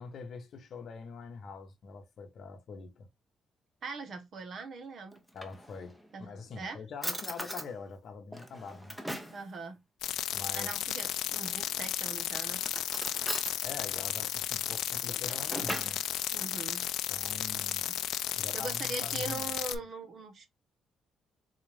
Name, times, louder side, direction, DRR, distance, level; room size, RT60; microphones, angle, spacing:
voice 1, 0.0-3.1 5.3-9.0 10.3-10.7 13.6-16.0 17.1-17.9 18.3-19.5, left 5 dB, 60° left, 0.9 m, -44 dB
voice 2, 3.8-5.2 6.1-6.8 9.3-9.8 10.5-12.6 16.3-16.9 17.9-18.0 18.5-20.5, right 3 dB, 55° right, 1.0 m, -41 dB
Drawer open or close, 5.1-6.1 6.6-6.7 7.0-7.7 8.3-9.4 11.3-11.8 12.6-13.6 15.0-16.0, equal, 5° right, 0.8 m, -39 dB
sound 1, 10.0-19.8, left 12 dB, 85° left, 0.3 m, -34 dB
4.1 x 2.5 x 3.2 m
cardioid pair, 90°, 0 cm